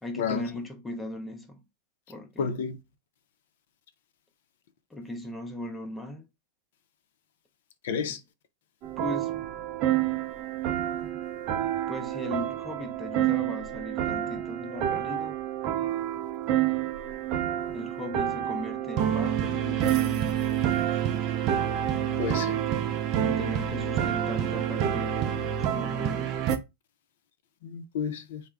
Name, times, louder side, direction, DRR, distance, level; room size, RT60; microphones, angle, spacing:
voice 1, 0.0-1.6 2.1-2.5 4.9-6.3 8.1-8.2 9.0-9.4 11.9-15.4 17.7-20.3 22.5-22.7 23.2-26.3, left 2 dB, 10° left, 0.6 m, -38 dB
voice 2, 2.4-2.8 7.8-8.2 22.2-22.6 27.6-28.4, left 6 dB, 70° left, 0.6 m, -30 dB
sound 1, 8.8-26.6, right 10 dB, 40° right, 0.5 m, -28 dB
3.6 x 2.1 x 3.3 m
supercardioid pair, 140°, 0 cm